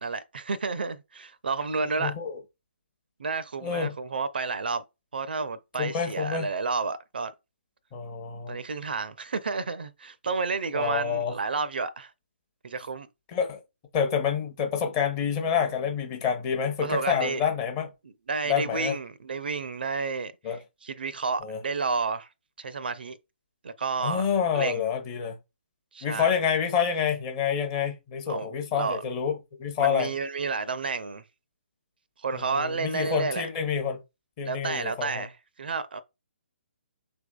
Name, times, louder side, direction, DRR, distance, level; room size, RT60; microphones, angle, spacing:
voice 1, 0.0-2.1 3.2-4.8 5.1-7.3 8.5-12.1 12.6-13.1 16.8-17.4 18.0-20.6 20.8-22.3 22.6-23.2 23.6-24.3 24.5-24.9 25.9-26.3 28.3-29.0 29.8-31.2 32.2-33.5 34.4-35.3 35.6-36.0, right 4 dB, 55° right, 0.4 m, -31 dB
voice 2, 2.0-2.4 3.6-3.9 5.8-6.5 7.9-8.6 10.7-11.3 13.3-13.6 13.9-17.9 18.5-19.0 20.4-20.6 21.4-21.6 24.0-25.4 26.0-30.1 32.3-34.0 34.4-35.2, left 7 dB, 20° left, 0.7 m, -28 dB
5.7 x 3.4 x 2.3 m
figure-of-eight pair, 135°, 6 cm